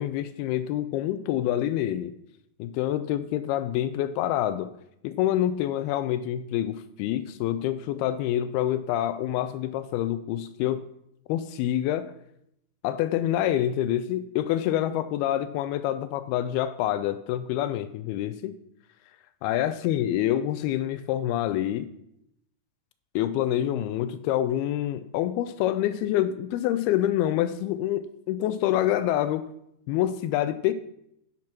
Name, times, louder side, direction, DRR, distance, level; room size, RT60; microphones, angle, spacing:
voice 1, 0.0-2.1 2.6-4.7 5.0-10.9 11.3-12.1 12.8-18.5 19.4-21.9 23.2-29.5 29.9-30.7, left 12 dB, 85° left, 13 dB, 2.4 m, -27 dB
10.5 x 6.0 x 5.9 m, 0.77 s
omnidirectional pair, 4.6 m